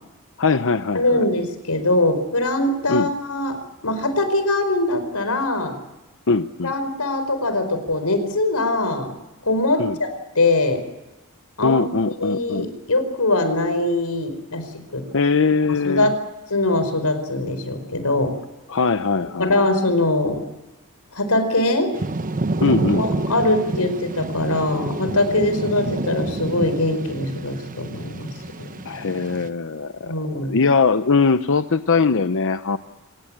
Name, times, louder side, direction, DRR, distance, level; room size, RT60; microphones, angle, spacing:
voice 1, 0.4-1.2 2.9-3.1 6.3-6.7 9.8-10.0 11.6-12.7 15.1-16.1 18.7-19.5 22.6-23.1 28.8-32.8, left 4 dB, 60° left, 10 dB, 0.8 m, -21 dB
voice 2, 0.9-3.6 3.8-5.8 6.6-9.2 9.4-10.1 10.3-10.8 11.6-11.8 12.2-14.7 14.9-15.0 15.8-16.2 16.5-18.3 19.4-20.4 21.1-21.9 23.0-28.3 28.6-28.7 30.0-30.6, left 2 dB, 90° left, 9 dB, 4.8 m, -22 dB
Thunder / Rain, 21.9-29.5, right 2 dB, 40° right, 1.0 m, -28 dB
27.0 x 18.0 x 8.7 m, 1.1 s
head